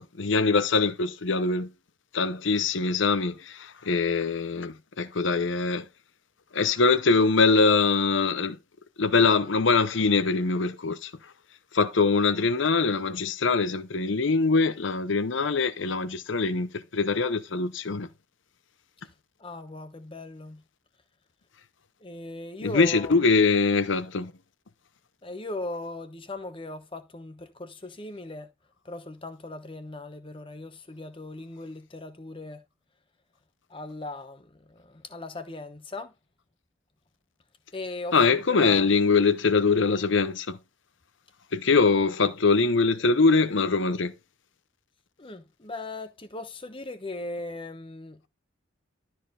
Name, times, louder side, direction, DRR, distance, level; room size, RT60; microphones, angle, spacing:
voice 1, 0.0-1.7 2.1-5.9 6.5-8.6 9.0-11.1 11.7-18.1 22.6-24.3 38.1-40.6 41.5-44.1, left 4 dB, 60° left, 0.8 m, -23 dB
voice 2, 19.4-20.6 22.0-23.2 25.2-28.5 28.8-32.6 33.7-36.1 37.7-38.9 45.2-48.3, left 2 dB, 25° left, 1.0 m, -38 dB
12.5 x 4.5 x 3.8 m
head